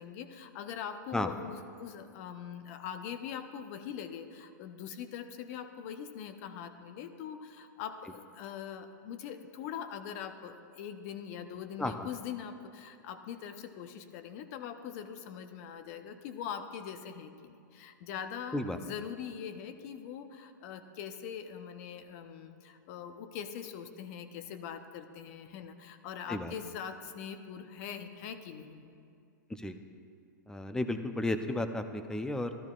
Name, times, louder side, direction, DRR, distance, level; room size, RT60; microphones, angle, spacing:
voice 1, 0.0-29.0, left 8 dB, 50° left, 9 dB, 0.8 m, -42 dB
voice 2, 30.5-32.5, left 2 dB, 5° left, 8 dB, 0.5 m, -33 dB
13.5 x 12.5 x 2.4 m, 2.4 s
hypercardioid pair, 120°, 10 cm